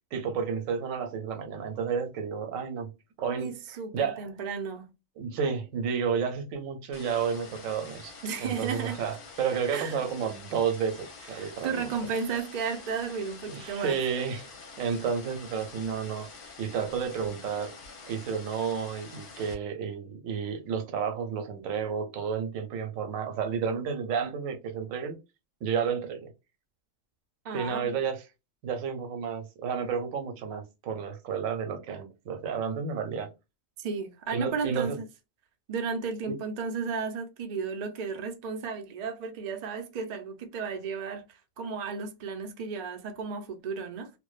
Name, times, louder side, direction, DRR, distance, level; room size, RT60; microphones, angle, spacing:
voice 1, 0.1-2.9 3.2-4.3 5.2-11.9 13.5-14.5 14.8-16.3 16.6-17.8 18.1-25.2 25.6-26.3 27.5-28.2 28.6-33.3 34.3-35.0 36.3-36.4, right 6 dB, 85° right, 1.0 m, -31 dB
voice 2, 3.2-4.9 8.2-9.0 9.7-10.0 11.4-14.0 27.4-27.9 33.8-35.0 35.7-41.2 41.6-44.1, right 5 dB, 65° right, 0.4 m, -34 dB
sound 1, 6.9-19.5, left 4 dB, 50° left, 0.7 m, -47 dB
2.5 x 2.1 x 2.3 m
omnidirectional pair, 1.4 m